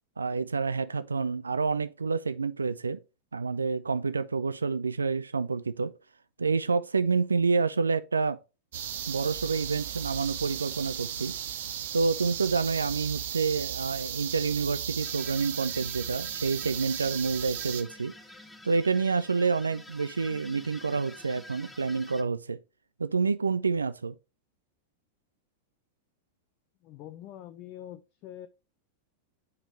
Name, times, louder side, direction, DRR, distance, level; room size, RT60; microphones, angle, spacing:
voice 1, 0.2-3.0 3.3-5.9 6.4-8.4 9.1-11.4 11.9-18.1 18.6-22.6 23.0-24.1, right 4 dB, 75° right, 0.3 m, -28 dB
sound 1, 8.7-17.8, right 9 dB, 60° right, 0.9 m, -35 dB
sound 2, 15.0-22.2, left 1 dB, 5° left, 0.8 m, -49 dB
voice 2, 26.8-28.5, left 12 dB, 40° left, 0.5 m, -44 dB
7.1 x 5.0 x 3.1 m
figure-of-eight pair, 90°, 0 cm